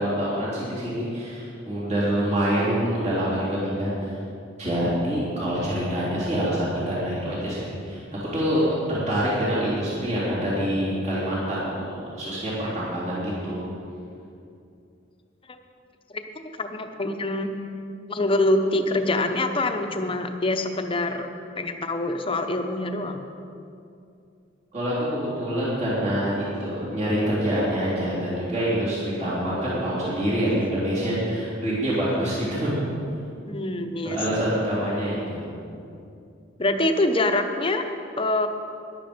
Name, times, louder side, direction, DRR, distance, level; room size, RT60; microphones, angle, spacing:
voice 1, 0.0-4.1 4.6-13.6 24.7-32.7 34.0-35.5, equal, 35° right, -9 dB, 3.4 m, -26 dB
voice 2, 16.6-17.5 18.1-21.3 21.6-23.2 33.5-34.4 36.6-37.8 38.2-38.5, left 2 dB, 25° left, 6 dB, 0.8 m, -25 dB
13.5 x 11.0 x 5.2 m, 2.6 s
head